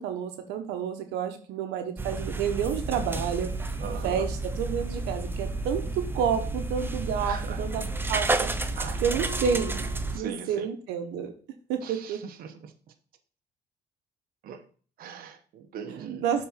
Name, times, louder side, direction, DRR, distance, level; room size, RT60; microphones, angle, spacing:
voice 1, 0.0-3.5 4.0-8.5 9.0-9.9 10.1-11.3 11.7-12.2 16.2-16.5, right 7 dB, 90° right, 7 dB, 1.1 m, -30 dB
sound 1, 2.0-10.2, right 2 dB, 15° right, 0.7 m, -31 dB
voice 2, 3.8-4.2 7.2-7.6 8.8-9.0 10.1-10.6 11.8-12.7 14.4-14.6 15.0-16.2, right 7 dB, 60° right, 5 dB, 1.0 m, -40 dB
7.0 x 4.1 x 5.7 m, 0.41 s
cardioid pair, 110°, 17 cm